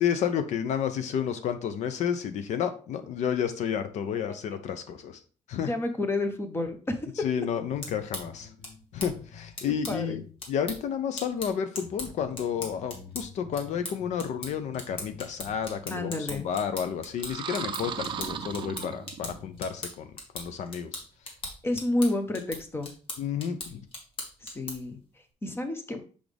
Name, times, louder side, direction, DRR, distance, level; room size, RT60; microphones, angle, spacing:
voice 1, 0.0-5.2 5.5-5.7 7.2-8.5 8.9-21.0 23.2-23.8, left 8 dB, 70° left, 9 dB, 0.7 m, -31 dB
voice 2, 5.7-7.0 9.9-10.2 15.9-16.5 21.6-22.9 24.4-25.0 25.4-26.0, left 2 dB, 20° left, 7 dB, 0.9 m, -30 dB
sound 1, 7.6-25.0, left 2 dB, 45° left, 1.8 m, -41 dB
sound 2, 7.7-10.3 10.6-10.7 11.3-11.4 11.8-16.1 16.4-16.5 17.1-17.2 17.6-19.7, left 6 dB, 85° left, 1.8 m, -48 dB
sound 3, 17.1-19.4, right 8 dB, 40° right, 0.5 m, -36 dB
6.1 x 5.0 x 3.4 m, 0.39 s
cardioid pair, 150°, 12 cm